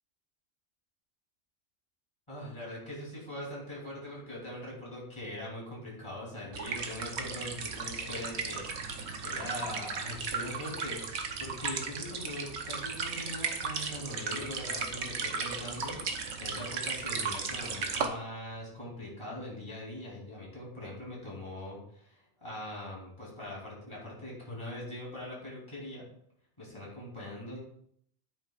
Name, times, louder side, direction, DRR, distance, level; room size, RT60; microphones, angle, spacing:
voice 1, 2.3-11.0 11.4-26.1 26.6-27.6, left 1 dB, 25° left, -4 dB, 3.3 m, -42 dB
sound 1, 6.5-18.1, right 5 dB, 70° right, 1.2 m, -36 dB
10.0 x 8.7 x 2.4 m, 0.68 s
omnidirectional pair, 1.2 m